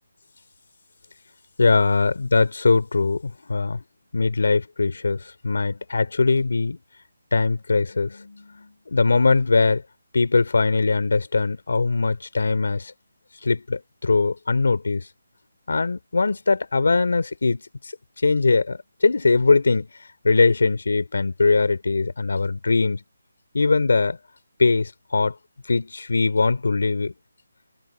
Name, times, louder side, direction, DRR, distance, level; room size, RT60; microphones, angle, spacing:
voice 1, 1.6-3.8 4.1-6.8 7.3-9.8 10.1-12.9 13.4-15.1 15.7-17.6 18.2-19.9 20.2-23.0 23.5-24.2 24.6-25.3 25.7-27.1, left 3 dB, 70° left, 3.9 m, -21 dB
hypercardioid pair, 175°, 0 cm